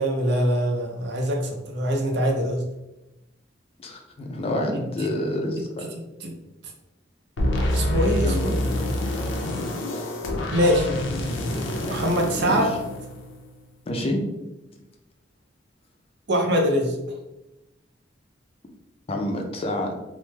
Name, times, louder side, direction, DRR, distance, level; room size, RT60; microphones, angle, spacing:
voice 1, 0.0-2.6 4.7-5.1 6.2-6.3 7.7-8.6 10.5-10.9 11.9-12.7 16.3-17.0, equal, 65° right, 2 dB, 0.6 m, -23 dB
voice 2, 3.8-5.9 8.2-8.7 12.4-12.7 13.9-14.2 19.1-19.9, left 1 dB, 35° left, 3 dB, 0.4 m, -28 dB
sound 1, 7.4-13.5, left 1 dB, 85° left, 0.6 m, -27 dB
3.1 x 2.0 x 3.2 m, 0.98 s
head